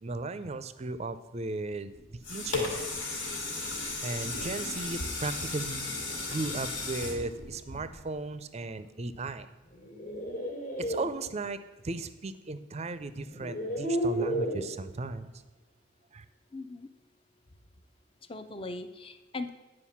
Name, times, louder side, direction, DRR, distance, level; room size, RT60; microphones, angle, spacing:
voice 1, 0.0-2.9 4.0-5.9 6.3-9.5 10.8-15.3 16.1-16.2, right 3 dB, 35° right, 13 dB, 0.5 m, -36 dB
sound 1, 1.9-8.3 8.8-8.9, left 3 dB, 90° left, 2.3 m, -35 dB
sound 2, 9.7-11.1 12.5-12.6 13.3-14.7, right 1 dB, 45° left, 1.6 m, -32 dB
voice 2, 16.5-16.9 18.3-19.5, left 2 dB, 30° left, 9 dB, 0.6 m, -39 dB
10.0 x 4.9 x 7.2 m, 1.1 s
head